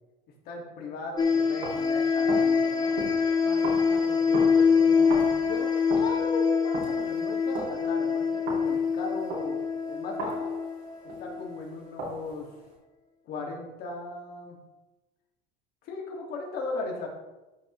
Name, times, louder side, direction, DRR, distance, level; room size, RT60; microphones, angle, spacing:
voice 1, 0.4-3.0 3.4-5.7 6.0-10.5 11.2-12.5 13.2-14.6 15.8-17.1, left 3 dB, 55° left, 0 dB, 2.5 m, -37 dB
sound 1, 1.2-11.6, left 5 dB, 20° left, 0.9 m, -25 dB
sound 2, 1.2-11.5 12.0-12.7, right 2 dB, 65° right, 3.1 m, -39 dB
12.5 x 5.9 x 3.3 m, 1.1 s
cardioid pair, 135°, 19 cm